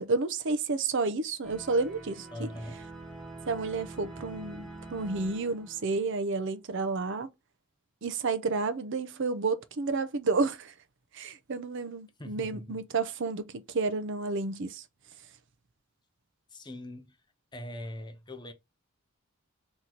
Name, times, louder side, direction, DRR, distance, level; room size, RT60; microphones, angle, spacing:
voice 1, 0.0-2.5 3.5-7.3 8.0-10.7 11.1-14.8, right 3 dB, 60° right, 0.6 m, -31 dB
sound 1, 1.4-6.3, right 2 dB, ahead, 1.1 m, -45 dB
voice 2, 2.3-2.8 12.2-12.8 16.5-17.2 17.5-18.5, left 1 dB, 20° left, 0.6 m, -41 dB
3.9 x 3.0 x 4.3 m
head